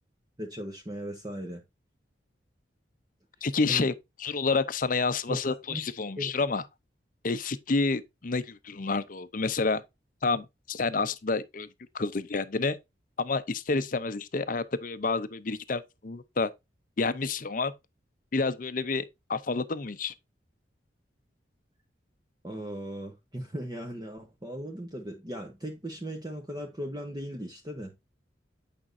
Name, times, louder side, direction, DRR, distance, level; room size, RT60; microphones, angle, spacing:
voice 1, 0.4-1.6 3.7-3.8 5.3-5.4 5.7-5.8 6.2-6.3 22.4-27.9, equal, 20° right, 1.0 m, -37 dB
voice 2, 3.4-3.9 4.2-6.6 7.2-9.8 10.2-11.7 11.9-12.8 13.2-16.5 17.0-17.7 18.3-19.0 19.3-20.1, left 4 dB, 45° left, 0.6 m, -29 dB
8.8 x 5.2 x 2.6 m
head